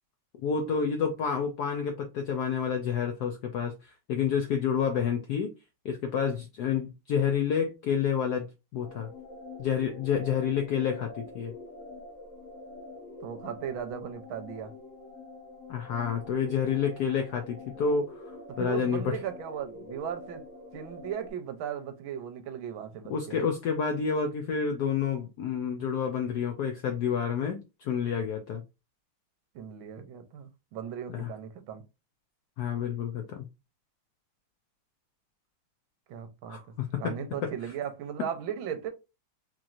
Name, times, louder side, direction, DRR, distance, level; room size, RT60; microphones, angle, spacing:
voice 1, 0.4-5.5 5.8-9.1 9.6-11.5 15.7-19.1 23.1-28.6 31.1-31.3 32.6-33.5 36.5-37.2, left 7 dB, 80° left, 0.8 m, -29 dB
sound 1, 8.8-21.3, left 2 dB, 45° left, 1.1 m, -46 dB
voice 2, 13.2-14.7 18.5-20.4 20.7-23.4 29.5-31.8 36.1-36.6 37.0-38.9, right 9 dB, 75° right, 1.4 m, -37 dB
4.3 x 3.0 x 2.4 m
omnidirectional pair, 2.4 m